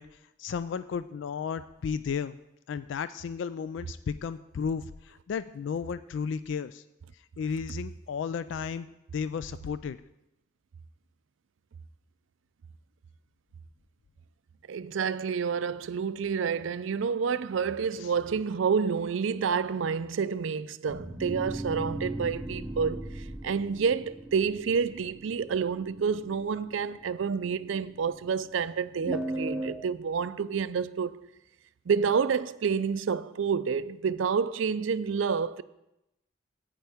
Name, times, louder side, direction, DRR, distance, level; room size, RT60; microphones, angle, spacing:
voice 1, 0.0-2.4 2.7-6.8 7.1-8.9 9.1-10.0 18.0-18.1, left 6 dB, 75° left, 0.3 m, -34 dB
voice 2, 14.7-31.2 31.9-35.6, right 6 dB, 85° right, 0.4 m, -29 dB
sound 1, 20.9-28.2 29.0-29.7, right 1 dB, 5° right, 0.5 m, -38 dB
15.0 x 9.0 x 3.5 m
head